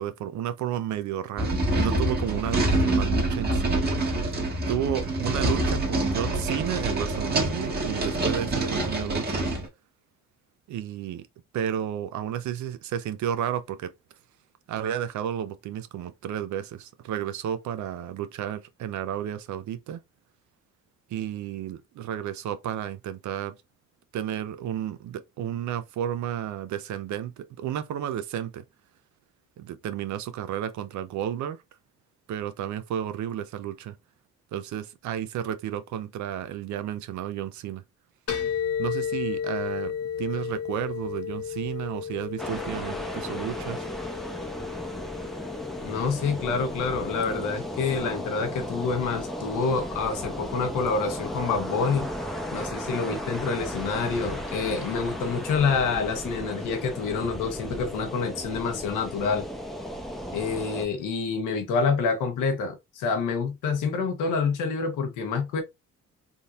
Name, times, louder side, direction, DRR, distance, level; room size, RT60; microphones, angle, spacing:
voice 1, 0.0-3.8 4.7-9.5 10.7-11.3 11.5-13.9 14.7-20.0 21.1-23.5 24.1-28.6 29.6-31.6 32.3-34.0 34.5-37.8 38.8-39.9 40.2-43.9, right 10 dB, 70° right, 0.6 m, -32 dB
sound 1, 1.4-9.7, right 2 dB, 30° right, 1.4 m, -26 dB
sound 2, 38.3-55.6, left 8 dB, 50° left, 1.3 m, -36 dB
sound 3, 42.4-60.9, equal, ahead, 0.7 m, -35 dB
voice 2, 45.8-52.1 52.5-59.4 60.3-65.6, left 5 dB, 90° left, 1.1 m, -27 dB
3.7 x 2.7 x 2.4 m
cardioid pair, 90°, 30 cm